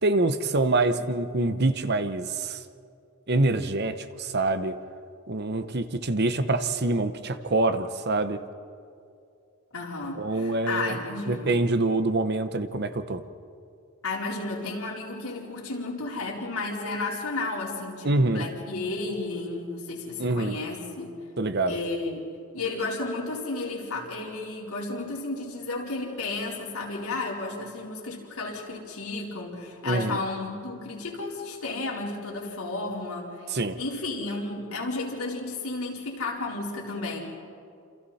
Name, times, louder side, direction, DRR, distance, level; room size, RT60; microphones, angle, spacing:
voice 1, 0.0-2.6 3.3-4.8 5.3-8.4 10.2-11.0 11.3-13.2 18.0-18.5 20.2-20.6 21.4-21.8 29.9-30.2 33.5-33.8, right 2 dB, 45° right, 10 dB, 0.9 m, -25 dB
voice 2, 9.7-11.5 14.0-21.1 21.7-33.5 33.8-37.2, left 3 dB, 75° left, -3 dB, 4.2 m, -33 dB
28.5 x 27.5 x 4.3 m, 2.5 s
head